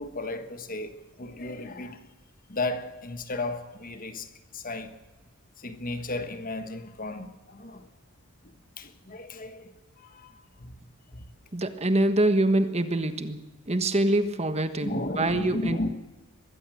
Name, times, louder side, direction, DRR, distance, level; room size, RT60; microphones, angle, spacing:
voice 1, 0.0-2.1 2.5-4.9 5.6-7.9 8.8-10.7 11.1-11.2 14.8-15.9, left 2 dB, 40° left, 1.4 m, -34 dB
voice 2, 11.5-13.4 13.7-15.8, right 1 dB, 30° right, 1.4 m, -25 dB
22.0 x 15.5 x 7.7 m
head